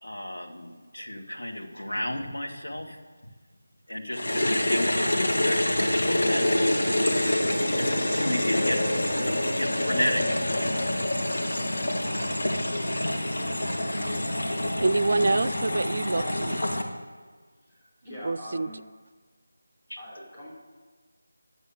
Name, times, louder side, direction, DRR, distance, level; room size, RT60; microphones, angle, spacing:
voice 1, 0.0-3.0 3.9-7.2 7.7-8.8 9.5-10.8 12.0-13.4 19.9-20.0, left 1 dB, 75° left, 0 dB, 2.2 m, -33 dB
sound 1, 4.1-16.8, left 1 dB, 50° left, 1.8 m, -26 dB
voice 2, 14.8-16.6 18.2-18.7, right 2 dB, 50° right, 16 dB, 0.4 m, -26 dB
voice 3, 18.0-18.8 20.0-20.5, equal, 15° left, -7 dB, 4.3 m, -42 dB
11.5 x 7.9 x 6.7 m, 1.4 s
figure-of-eight pair, 165°, 0 cm